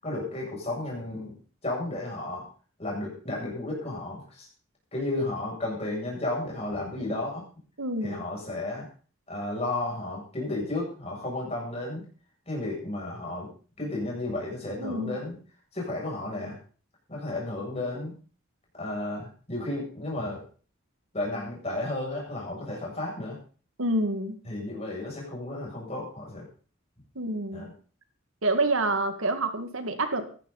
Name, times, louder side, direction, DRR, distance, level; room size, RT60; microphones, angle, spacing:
voice 1, 0.0-2.4 2.8-4.5 4.9-7.4 8.0-8.9 9.3-12.0 12.5-13.5 13.8-15.3 15.7-16.6 17.1-18.1 18.8-20.4 21.1-23.4 24.5-26.5 27.5-27.7, left 2 dB, 30° left, -3 dB, 7.6 m, -33 dB
voice 2, 7.8-8.2 14.8-15.2 23.8-24.4 27.2-27.7 28.4-30.2, right 2 dB, 80° right, 7 dB, 2.2 m, -27 dB
17.5 x 13.5 x 4.2 m, 0.40 s
head